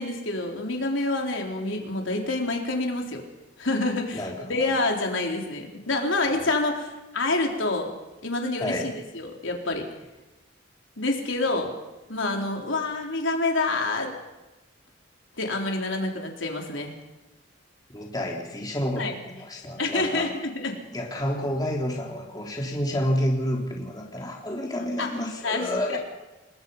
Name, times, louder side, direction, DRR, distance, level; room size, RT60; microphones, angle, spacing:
voice 1, 0.0-3.2 3.6-7.9 8.2-9.9 11.0-11.7 12.1-14.1 15.4-16.9 19.0-19.1 19.8-20.8 25.0-25.1 25.4-26.0, left 2 dB, 85° left, 1 dB, 4.0 m, -27 dB
voice 2, 4.1-4.7 6.4-6.5 8.6-8.9 17.9-20.4 20.9-26.0, equal, 20° left, -1 dB, 3.6 m, -29 dB
29.0 x 21.0 x 5.6 m, 1.1 s
head